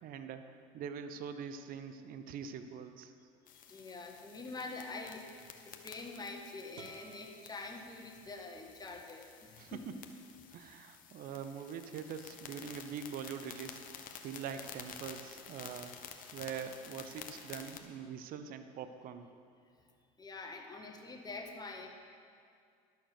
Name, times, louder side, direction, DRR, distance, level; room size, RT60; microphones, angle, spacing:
voice 1, 0.0-3.1 9.6-9.9 10.5-13.9 14.2-15.9 16.3-19.3, right 7 dB, 55° right, 9 dB, 0.7 m, -43 dB
sound 1, 3.5-17.8, left 7 dB, 50° left, 1.0 m, -51 dB
voice 2, 3.5-10.0 20.2-21.9, left 3 dB, 20° left, 2 dB, 1.4 m, -46 dB
sound 2, 6.7-8.7, right 6 dB, 90° right, 1.0 m, -57 dB
11.5 x 6.5 x 6.5 m, 2.3 s
supercardioid pair, 90°, 18 cm